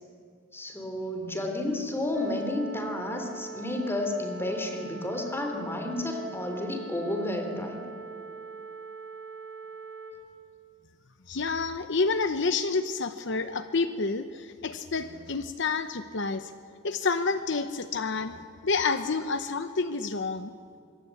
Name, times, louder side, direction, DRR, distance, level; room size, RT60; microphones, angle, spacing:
voice 1, 0.5-7.8, left 1 dB, 10° left, 4 dB, 3.4 m, -31 dB
sound 1, 2.1-10.1, right 5 dB, 75° right, 4.1 m, -42 dB
voice 2, 11.3-16.5 16.8-18.4 18.6-20.5, left 4 dB, 60° left, 10 dB, 0.9 m, -29 dB
25.5 x 23.0 x 8.5 m, 2.4 s
head